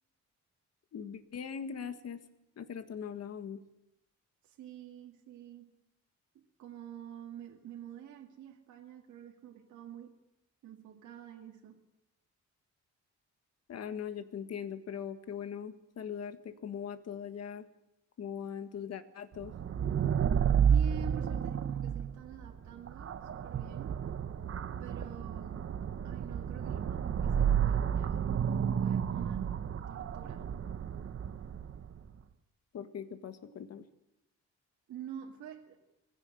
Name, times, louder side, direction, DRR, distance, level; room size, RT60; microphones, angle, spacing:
voice 1, 0.9-2.2 2.6-3.6 13.7-17.7 18.2-19.5 32.7-33.9, left 7 dB, 60° left, 9 dB, 1.7 m, -40 dB
voice 2, 4.4-5.7 6.3-10.1 10.6-11.8 20.6-24.0 24.8-25.7 26.0-28.3 28.8-29.5 29.9-30.5 34.9-35.8, right 10 dB, 90° right, 0 dB, 2.2 m, -48 dB
sound 1, 19.4-32.0, right 8 dB, 50° right, 1.2 m, -31 dB
21.0 x 16.5 x 7.8 m, 0.91 s
cardioid pair, 125°, 29 cm